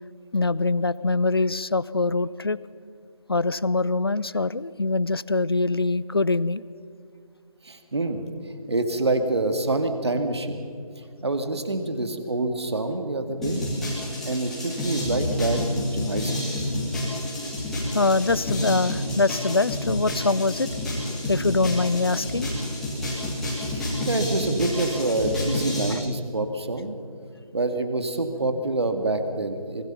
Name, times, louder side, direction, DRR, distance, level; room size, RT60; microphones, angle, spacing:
voice 1, 0.3-2.6 3.3-6.6 17.9-20.7 21.3-22.5 25.9-26.0, left 3 dB, 40° left, 19 dB, 0.5 m, -23 dB
voice 2, 7.6-8.2 8.7-10.6 11.2-13.6 14.2-15.6 15.9-16.5 23.7-27.0 27.5-29.9, right 2 dB, 45° right, 7 dB, 2.2 m, -26 dB
sound 1, 13.4-25.9, left 1 dB, ahead, 2.4 m, -29 dB
25.5 x 24.0 x 5.8 m, 2.3 s
figure-of-eight pair, 165°, 19 cm